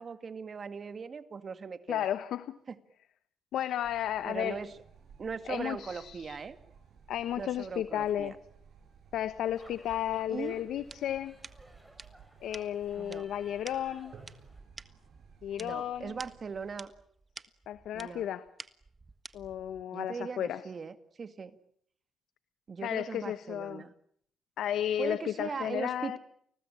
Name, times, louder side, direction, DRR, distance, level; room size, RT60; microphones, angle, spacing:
voice 1, 0.0-2.1 2.7-2.8 4.2-4.7 5.2-6.6 7.4-8.3 10.3-10.6 12.9-13.3 15.6-16.9 17.9-18.3 19.9-21.6 22.7-23.9 25.0-26.2, right 5 dB, 40° right, 11 dB, 2.1 m, -39 dB
voice 2, 1.9-2.6 3.5-4.6 5.5-6.4 7.1-8.4 9.1-11.4 12.4-14.1 15.4-16.2 17.7-18.5 19.3-20.7 22.8-23.8 24.6-26.2, left 11 dB, 80° left, 14 dB, 1.0 m, -33 dB
sound 1, 3.8-16.8, right 6 dB, 60° right, 7.8 m, -57 dB
sound 2, 9.5-14.6, right 1 dB, 5° right, 6.9 m, -58 dB
sound 3, 10.8-19.8, right 3 dB, 25° right, 1.5 m, -51 dB
29.5 x 20.0 x 8.8 m, 0.69 s
cardioid pair, 90°, 0 cm